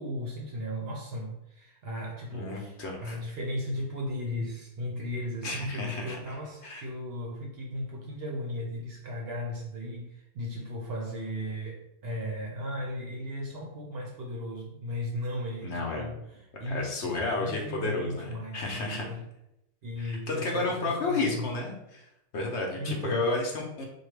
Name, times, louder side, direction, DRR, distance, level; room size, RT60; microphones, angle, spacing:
voice 1, 0.0-19.2 19.8-21.5 22.8-23.3, left 1 dB, 60° right, -1 dB, 0.7 m, -36 dB
voice 2, 2.3-3.2 5.4-6.2 6.6-6.8 15.6-16.1 16.6-19.0 20.0-22.0 22.3-23.8, left 3 dB, 60° left, 0 dB, 0.9 m, -32 dB
4.5 x 2.3 x 3.2 m, 0.86 s
omnidirectional pair, 1.4 m